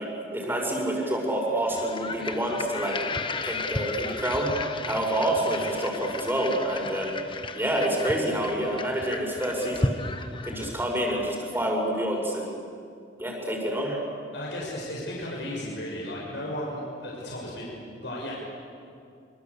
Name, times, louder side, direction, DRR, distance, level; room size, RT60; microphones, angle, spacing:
voice 1, 0.0-3.0 3.4-4.5 4.9-7.2 7.5-10.0 10.4-12.6 13.2-14.0, right 1 dB, 10° right, 0 dB, 6.0 m, -28 dB
sound 1, 1.7-11.0, left 3 dB, 30° left, 1.2 m, -34 dB
voice 2, 14.3-17.7 18.0-18.3, left 1 dB, 75° left, -4 dB, 6.5 m, -35 dB
25.5 x 25.5 x 8.3 m, 2.3 s
head